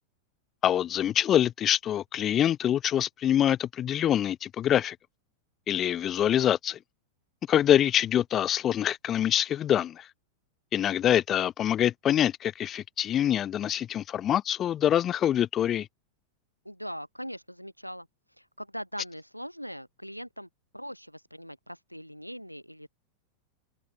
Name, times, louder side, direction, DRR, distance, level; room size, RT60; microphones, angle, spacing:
voice 1, 0.6-5.0 5.7-6.8 7.5-10.1 10.7-15.9, left 10 dB, 30° left, 1.7 m, -25 dB
voice 2, 16.6-18.1 18.4-22.9, equal, 90° left, 4.7 m, -41 dB
figure-of-eight pair, 90°, 0 cm